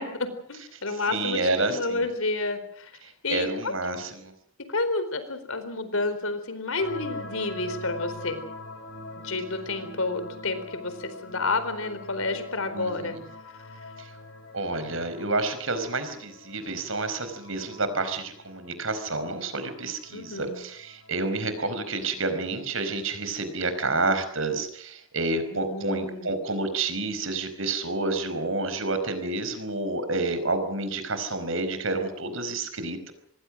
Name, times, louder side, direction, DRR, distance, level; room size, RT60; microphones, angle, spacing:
voice 1, 0.0-2.9 3.2-3.7 4.7-8.5 9.2-13.2 20.1-20.6 25.5-26.4, left 3 dB, 80° left, 11 dB, 4.3 m, -30 dB
voice 2, 1.1-2.1 3.3-4.3 12.7-13.2 14.0-14.1 14.5-33.1, right 3 dB, 70° right, 10 dB, 4.8 m, -29 dB
sound 1, 6.8-23.3, left 2 dB, 55° left, 3.3 m, -44 dB
26.5 x 21.0 x 6.4 m, 0.64 s
head